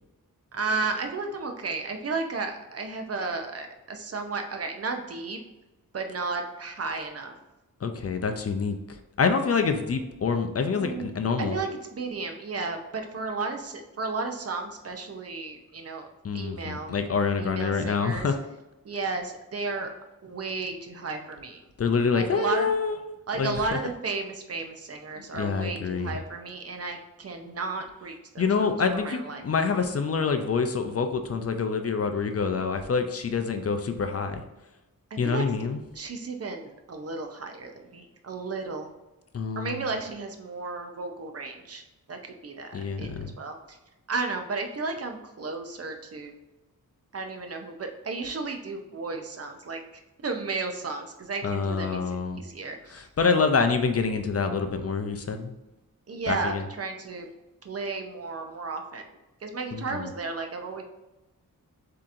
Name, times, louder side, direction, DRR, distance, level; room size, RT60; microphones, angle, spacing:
voice 1, 0.5-5.4 5.9-7.3 10.7-11.1 11.4-16.1 16.3-17.0 17.4-18.3 18.8-19.9 20.2-21.6 22.1-22.7 23.3-28.7 29.0-29.4 35.1-35.4 35.9-38.9 39.6-41.8 42.1-43.8 44.1-46.3 47.1-49.8 50.2-53.0 56.1-57.3 57.6-59.1 59.4-60.8, right 4 dB, 45° right, 5 dB, 0.6 m, -33 dB
voice 2, 7.8-11.6 16.2-18.4 21.8-23.0 23.3-23.8 25.2-26.2 28.4-34.4 35.2-35.8 39.3-39.9 42.7-43.4 51.4-52.4 52.9-55.5 56.3-56.6 59.7-60.1, left 5 dB, 45° left, 7 dB, 0.4 m, -26 dB
7.3 x 2.9 x 2.5 m, 1.0 s
wide cardioid pair, 155°, 34 cm